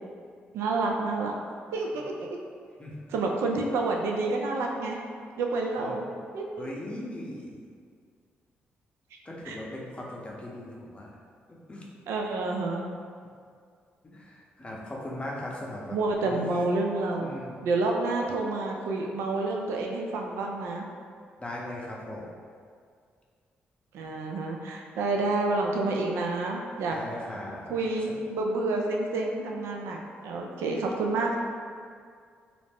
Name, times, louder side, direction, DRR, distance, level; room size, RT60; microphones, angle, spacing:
voice 1, 0.5-1.4 1.7-2.4 3.1-5.0 5.4-6.1 6.3-6.7 9.4-9.6 12.1-12.9 15.9-17.3 17.6-20.8 23.9-27.0 27.7-31.4, right 3 dB, 80° right, 0 dB, 0.3 m, -29 dB
voice 2, 6.6-7.6 9.2-11.1 11.7-11.8 14.0-16.0 16.2-16.7 17.2-17.6 21.4-22.2 26.9-27.7 28.1-28.2, left 1 dB, 25° left, -3 dB, 0.6 m, -38 dB
2.4 x 2.0 x 3.4 m, 2.1 s
supercardioid pair, 55°, 4 cm